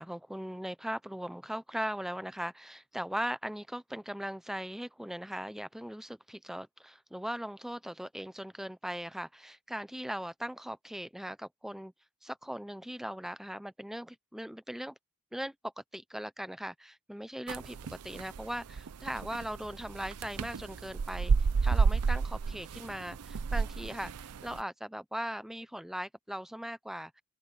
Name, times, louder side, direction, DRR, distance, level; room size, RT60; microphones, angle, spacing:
voice 1, 0.0-11.9 12.2-14.9 15.3-21.3 21.6-27.2, equal, ahead, 0.5 m, -39 dB
sound 1, 17.5-24.6, right 5 dB, 85° right, 0.5 m, -31 dB
open air
head